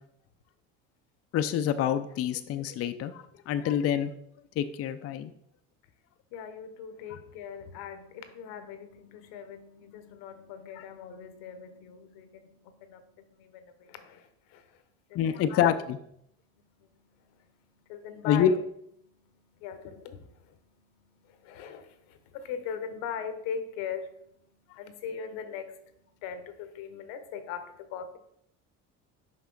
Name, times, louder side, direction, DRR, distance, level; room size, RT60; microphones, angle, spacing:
voice 1, 1.3-4.1 4.6-5.3 15.2-16.0 18.3-18.5, left 10 dB, 45° left, 9 dB, 0.4 m, -27 dB
voice 2, 6.3-14.8 15.1-15.9 16.6-18.6 19.0-28.2, left 7 dB, 80° left, 9 dB, 0.9 m, -41 dB
5.7 x 5.4 x 3.8 m, 0.74 s
supercardioid pair, 90°, 35 cm